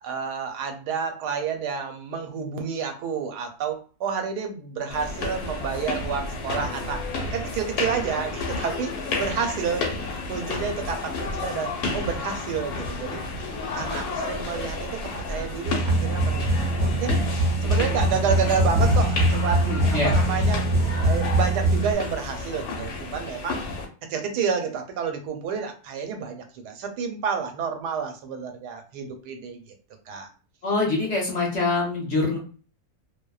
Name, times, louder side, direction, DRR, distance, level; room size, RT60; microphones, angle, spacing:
voice 1, 0.0-7.0 7.3-10.0 10.3-13.2 13.7-17.2 17.6-20.6 21.0-23.6 24.1-29.7 30.1-30.3, right 6 dB, 90° right, 5 dB, 1.2 m, -30 dB
sound 1, 4.9-23.9, left 3 dB, 75° left, 1.1 m, -31 dB
sound 2, 15.6-21.9, right 1 dB, 45° right, 0.7 m, -22 dB
voice 2, 19.5-20.1 30.6-32.4, left 3 dB, 55° left, -3 dB, 1.0 m, -25 dB
2.7 x 2.0 x 2.3 m, 0.38 s
omnidirectional pair, 1.7 m